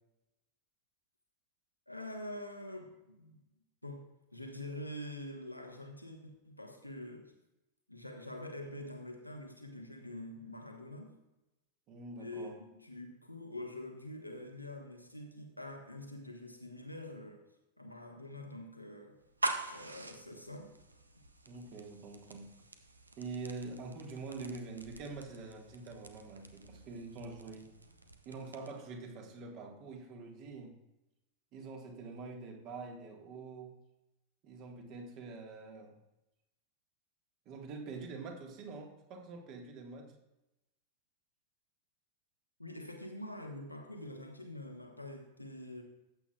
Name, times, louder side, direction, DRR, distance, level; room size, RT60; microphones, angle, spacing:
voice 1, 1.9-3.4 3.8-4.0 4.3-7.3 7.9-11.2 12.2-17.4 17.8-19.2 19.7-20.7 42.6-45.8, left 1 dB, 90° left, 3 dB, 1.3 m, -45 dB
voice 2, 11.9-12.6 21.4-22.5 23.2-27.7 28.2-30.7 31.5-33.8 34.4-35.9 37.4-40.2, right 3 dB, 40° right, 3 dB, 1.6 m, -45 dB
sound 1, 19.2-28.9, right 2 dB, 80° right, 0.7 m, -44 dB
14.0 x 8.4 x 2.4 m, 0.96 s
figure-of-eight pair, 90°, 0 cm